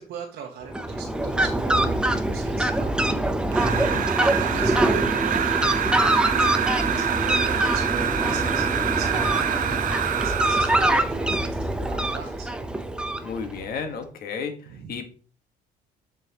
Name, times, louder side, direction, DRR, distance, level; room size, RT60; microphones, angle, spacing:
voice 1, 0.0-3.4 4.4-8.6 8.9-12.5 14.7-15.0, right 7 dB, 70° right, 0 dB, 1.1 m, -39 dB
Fowl, 0.7-13.7, right 1 dB, 5° right, 0.6 m, -24 dB
sound 1, 3.5-11.1, right 9 dB, 55° right, 0.6 m, -26 dB
voice 2, 3.7-4.1 13.2-15.1, left 5 dB, 60° left, 6 dB, 1.3 m, -33 dB
7.3 x 5.7 x 2.9 m, 0.41 s
cardioid pair, 110°, 17 cm